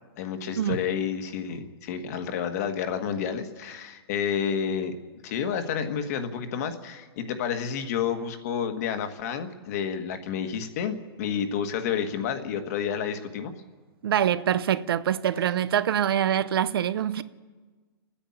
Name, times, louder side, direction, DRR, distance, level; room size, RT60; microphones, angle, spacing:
voice 1, 0.2-4.9 5.2-13.5, left 7 dB, 40° left, 1.6 m, -30 dB
voice 2, 14.0-17.2, right 10 dB, 70° right, 0.8 m, -24 dB
29.5 x 10.0 x 8.7 m
hypercardioid pair, 165°, 13 cm